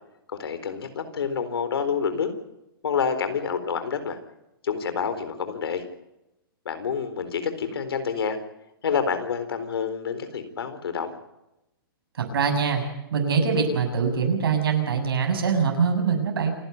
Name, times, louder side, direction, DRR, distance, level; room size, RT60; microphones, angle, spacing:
voice 1, 0.3-2.3 2.8-4.2 4.6-5.8 6.7-8.4 8.8-11.1, left 6 dB, 80° left, 10 dB, 4.1 m, -28 dB
voice 2, 12.2-12.8 13.1-16.5, right 5 dB, 75° right, 4 dB, 6.9 m, -23 dB
28.0 x 11.0 x 9.4 m, 0.90 s
hypercardioid pair, 165°, 12 cm